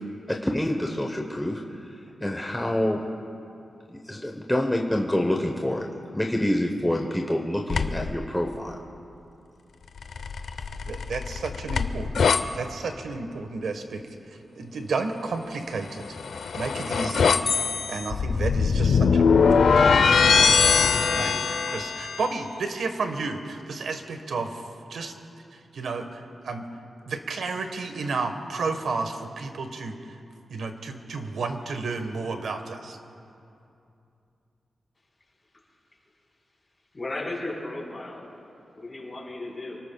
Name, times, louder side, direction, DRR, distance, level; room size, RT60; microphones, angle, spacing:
voice 1, 0.3-1.6 2.2-3.0 3.9-8.8, left 1 dB, 10° left, 1 dB, 0.9 m, -27 dB
sound 1, 7.7-8.1 10.0-12.4 15.9-22.3, left 5 dB, 75° left, 0.6 m, -22 dB
voice 2, 10.9-12.3 12.5-14.0 14.6-16.2 16.5-17.4 17.9-19.3 19.7-24.6 24.9-25.1 25.7-26.1 26.4-26.7 27.1-30.0 30.5-33.0, right 4 dB, 80° right, 6 dB, 1.3 m, -32 dB
voice 3, 36.9-38.3 38.7-39.8, left 2 dB, 30° left, -4 dB, 4.0 m, -35 dB
28.5 x 19.0 x 2.3 m, 2.7 s
wide cardioid pair, 145°, 0 cm